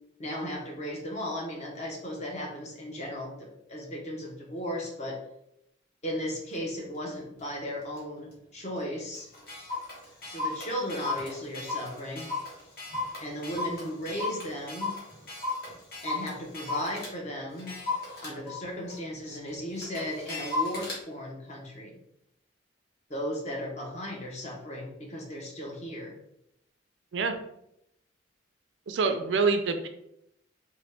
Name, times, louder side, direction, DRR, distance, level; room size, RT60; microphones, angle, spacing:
voice 1, 0.2-5.2 6.0-9.3 10.2-12.3 13.2-14.9 16.0-17.8 18.2-22.0 23.1-26.2, equal, 35° left, 0 dB, 0.8 m, -36 dB
Clock, 6.5-6.6 7.1-7.4 8.0-8.1 8.3-8.4 8.8-8.9 9.1-17.1 17.6-21.0, left 3 dB, 50° left, 1.2 m, -35 dB
voice 2, 28.9-29.9, right 4 dB, 70° right, 7 dB, 0.4 m, -26 dB
3.8 x 2.2 x 3.3 m, 0.78 s
head